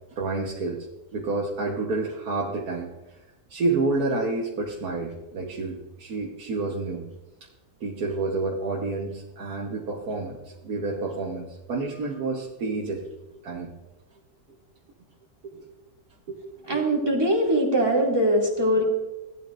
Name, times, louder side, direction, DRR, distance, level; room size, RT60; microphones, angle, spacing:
voice 1, 0.1-0.9 1.1-3.2 3.5-7.1 7.8-13.0 13.4-13.7 15.4-15.7 16.3-16.4 16.7-16.9 18.8-18.9, right 3 dB, 85° right, -2 dB, 1.7 m, -29 dB
voice 2, 16.7-18.8, equal, 15° right, -3 dB, 2.4 m, -22 dB
17.0 x 12.0 x 2.6 m, 1.0 s
omnidirectional pair, 1.6 m